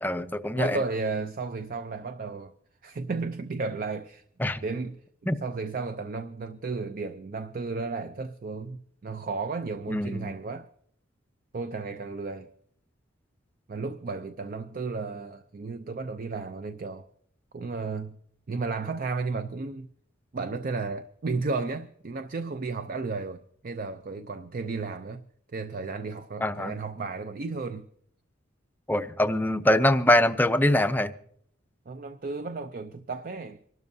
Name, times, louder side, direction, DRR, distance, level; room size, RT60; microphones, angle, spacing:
voice 1, 0.0-0.8 4.4-4.6 5.3-5.4 9.9-10.3 26.4-26.8 28.9-31.1, left 1 dB, 10° left, 0.5 m, -23 dB
voice 2, 0.6-2.5 2.8-4.2 4.6-5.0 5.4-10.7 11.5-12.5 13.7-17.1 17.5-18.2 18.5-19.9 20.3-25.2 25.5-27.9 31.9-33.7, right 4 dB, 45° right, 0.4 m, -33 dB
26.0 x 12.5 x 2.7 m
head